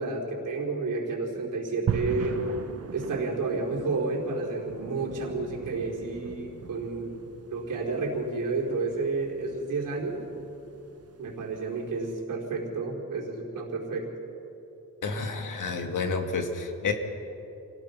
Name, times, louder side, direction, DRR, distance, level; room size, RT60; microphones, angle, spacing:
voice 1, 0.0-2.4 2.9-7.1 7.5-10.2 11.2-14.1, right 3 dB, 70° right, -2 dB, 4.5 m, -31 dB
sound 1, 1.9-12.1, right 6 dB, 50° right, 1.1 m, -39 dB
voice 2, 15.0-16.9, left 4 dB, 65° left, 4 dB, 2.1 m, -30 dB
28.0 x 18.0 x 5.9 m, 3.0 s
wide cardioid pair, 165°, 33 cm